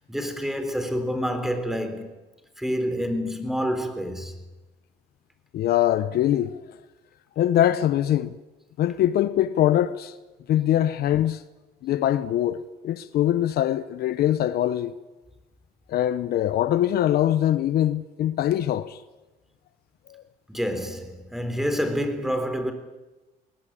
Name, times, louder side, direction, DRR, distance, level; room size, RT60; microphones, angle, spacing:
voice 1, 0.1-2.1 2.6-4.4 20.5-22.7, equal, ahead, 3.6 m, -28 dB
voice 2, 5.5-6.6 7.4-8.3 8.8-10.1 10.5-11.4 11.8-14.9 15.9-19.0 20.1-20.2, left 12 dB, 65° left, 0.9 m, -23 dB
20.0 x 19.5 x 8.7 m
cardioid pair, 110°, 17 cm